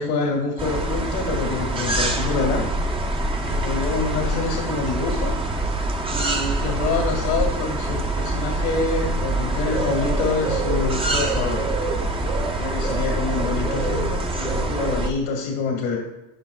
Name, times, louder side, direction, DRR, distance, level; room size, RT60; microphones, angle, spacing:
voice 1, 0.0-2.6 3.4-5.3 6.1-11.8 12.4-16.0, left 4 dB, 70° left, -1 dB, 2.3 m, -26 dB
sound 1, 0.6-15.1, right 1 dB, 15° right, 1.0 m, -25 dB
sound 2, 5.2-11.1, right 4 dB, 45° right, 1.2 m, -31 dB
16.0 x 5.5 x 2.4 m, 0.99 s
supercardioid pair, 100°, 42 cm